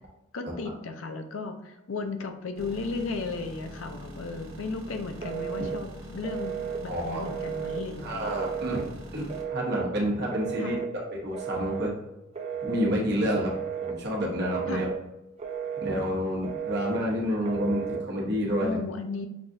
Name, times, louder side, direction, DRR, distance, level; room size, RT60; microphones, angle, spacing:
voice 1, 0.3-8.3 10.6-10.7 14.7-14.8 18.6-19.3, left 3 dB, 70° left, 7 dB, 0.5 m, -35 dB
sound 1, 2.6-9.4, equal, 80° right, 1.2 m, -43 dB
Telephone, 5.2-5.8 6.2-6.8 7.3-7.8 8.3-8.8 9.3-9.9 10.3-10.9 11.3-11.9 12.3-12.9 13.4-13.9 14.4-15.0 15.4-16.0 16.4-17.0 17.4-18.0, right 8 dB, 35° right, 0.4 m, -33 dB
voice 2, 6.9-7.2 8.0-11.9 12.6-13.5 13.8-14.9 15.8-18.8, equal, 55° right, -2 dB, 1.1 m, -29 dB
5.9 x 2.4 x 2.6 m, 0.95 s
head